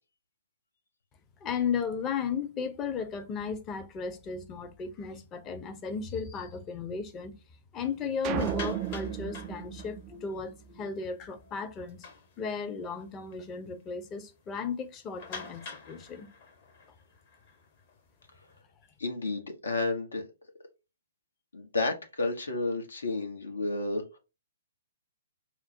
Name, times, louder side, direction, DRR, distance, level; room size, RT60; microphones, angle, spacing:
voice 1, 1.4-7.4 7.7-12.0 12.4-16.3, left 6 dB, 20° left, 0.7 m, -35 dB
sound 1, 8.2-10.3 10.8-11.0 11.3-11.4 11.8-12.8 13.3-13.4 13.8-13.9 15.2-18.5, left 4 dB, 45° left, 1.1 m, -46 dB
sound 2, 8.2-10.8, right 11 dB, 30° right, 0.3 m, -35 dB
voice 2, 19.0-20.2 21.5-24.2, left 3 dB, 70° left, 1.0 m, -31 dB
5.7 x 2.0 x 2.7 m
figure-of-eight pair, 120°, 0 cm